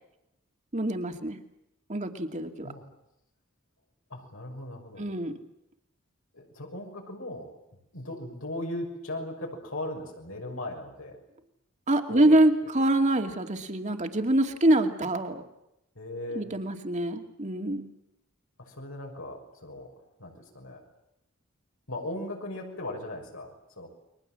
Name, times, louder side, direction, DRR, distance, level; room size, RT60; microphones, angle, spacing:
voice 1, 0.7-1.4 1.9-2.7 5.0-5.3 11.9-15.4 16.4-17.9, right 1 dB, 35° right, 5 dB, 2.4 m, -25 dB
voice 2, 4.1-5.1 6.3-7.5 7.9-11.2 12.1-12.4 16.0-16.4 18.6-19.9 20.2-20.8 21.9-23.9, left 1 dB, 85° left, 1 dB, 6.2 m, -38 dB
30.0 x 22.5 x 7.7 m, 0.84 s
head